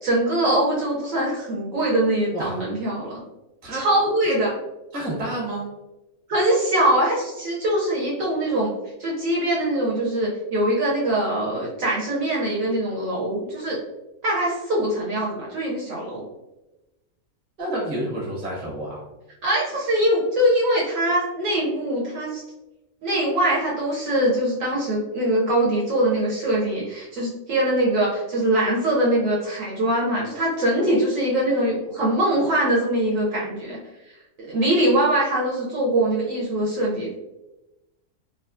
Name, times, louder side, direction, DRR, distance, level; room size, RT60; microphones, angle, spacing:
voice 1, 0.0-3.1 3.7-4.5 6.3-8.7 9.0-13.8 14.2-16.2 19.4-22.4 23.0-33.8 34.5-37.1, right 1 dB, 70° right, -5 dB, 0.9 m, -22 dB
voice 2, 4.9-5.7 17.6-19.0, right 1 dB, 30° right, -3 dB, 0.8 m, -29 dB
2.9 x 2.2 x 2.4 m, 1.0 s
omnidirectional pair, 1.6 m